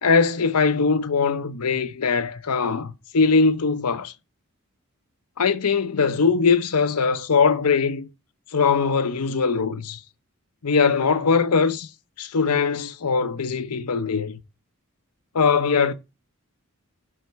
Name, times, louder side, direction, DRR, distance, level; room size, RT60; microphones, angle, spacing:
voice 1, 0.0-4.1 5.4-8.1 8.5-10.0 10.6-11.9 12.2-14.4 15.3-15.9, left 5 dB, 90° left, 0.8 m, -21 dB
11.5 x 4.1 x 4.7 m
head